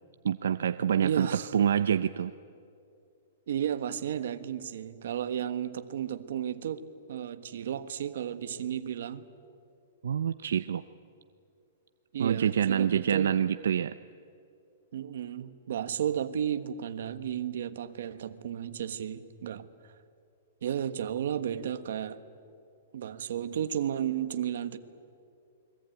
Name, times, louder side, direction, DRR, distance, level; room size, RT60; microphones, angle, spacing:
voice 1, 0.2-1.3 1.5-2.3 10.0-10.8 12.2-13.9, right 8 dB, 80° right, 12 dB, 0.6 m, -26 dB
voice 2, 1.0-1.5 3.5-9.2 12.1-13.3 14.9-19.6 20.6-22.2 22.9-24.8, right 9 dB, 60° right, 10 dB, 1.4 m, -33 dB
29.0 x 22.0 x 9.2 m, 2.5 s
hypercardioid pair, 180°, 0 cm